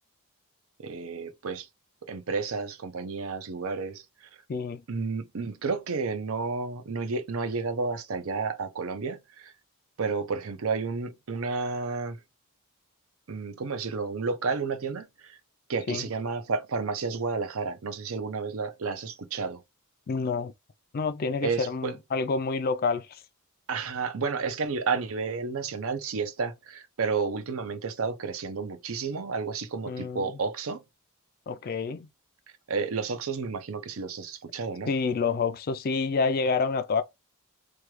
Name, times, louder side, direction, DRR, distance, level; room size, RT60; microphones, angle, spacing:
voice 1, 0.8-1.7 2.0-4.3 4.9-9.5 10.0-12.2 13.3-15.4 15.7-19.6 21.4-21.9 23.7-30.8 32.7-34.9, right 4 dB, 65° right, 0.6 m, -31 dB
voice 2, 4.5-4.8 15.9-16.0 20.1-20.5 20.9-23.1 29.9-30.2 31.5-32.1 34.9-37.0, left 4 dB, 40° left, 0.4 m, -28 dB
3.2 x 2.3 x 3.0 m
head